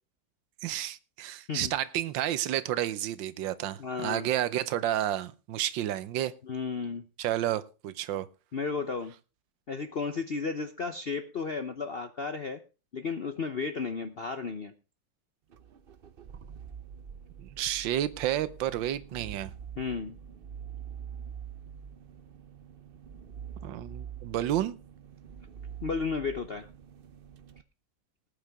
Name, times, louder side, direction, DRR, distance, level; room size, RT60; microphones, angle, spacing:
voice 1, 0.6-6.3 7.2-8.3 17.4-19.5 23.6-24.8, right 12 dB, 85° right, 14 dB, 1.5 m, -31 dB
voice 2, 3.8-4.3 6.4-7.0 8.5-9.1 9.7-12.6 12.9-14.7 19.8-20.2 25.8-26.7, left 5 dB, 50° left, 9 dB, 0.7 m, -33 dB
sound 1, 15.5-27.6, right 8 dB, 65° right, 0.5 m, -45 dB
20.0 x 8.7 x 3.5 m, 0.32 s
omnidirectional pair, 2.0 m